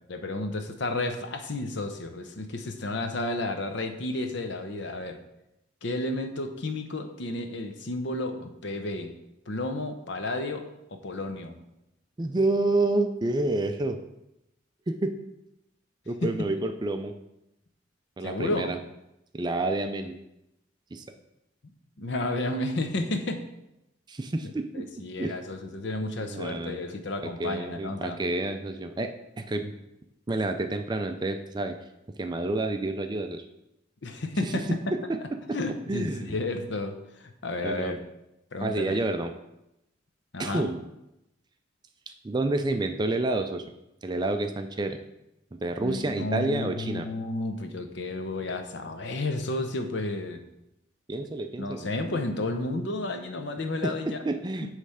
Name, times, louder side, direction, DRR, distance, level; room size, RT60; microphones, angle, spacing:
voice 1, 0.1-5.2 5.8-9.1 9.5-11.6 16.2-16.3 18.2-18.7 22.0-23.4 24.4-28.2 34.0-34.7 35.5-38.0 38.5-39.0 40.3-40.7 45.8-50.4 51.6-54.2 54.6-54.7, left 2 dB, 60° left, 7 dB, 0.7 m, -32 dB
voice 2, 12.2-14.0 14.9-15.1 16.1-17.1 18.2-18.8 19.3-20.2 20.9-21.0 24.1-24.9 25.2-25.4 26.0-26.9 27.2-29.1 29.4-29.7 30.3-31.8 32.2-33.4 34.4-34.5 34.9-35.2 35.9-36.4 37.6-38.0 38.6-39.3 40.4-40.8 42.2-43.6 44.0-45.0 45.5-47.0 51.1-51.9 53.8-53.9 54.2-54.7, right 2 dB, 20° right, 7 dB, 0.3 m, -29 dB
8.2 x 3.2 x 5.6 m, 0.88 s
head